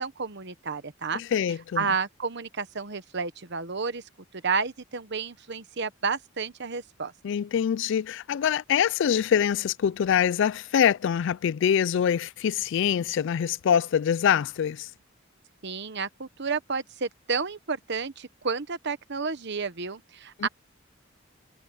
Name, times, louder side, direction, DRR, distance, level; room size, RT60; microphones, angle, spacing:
voice 1, 0.0-1.2 1.8-4.0 4.3-7.1 15.6-20.5, right 5 dB, 60° right, 1.2 m, -31 dB
voice 2, 1.1-1.8 7.2-14.9 20.4-20.5, left 8 dB, 65° left, 0.3 m, -24 dB
head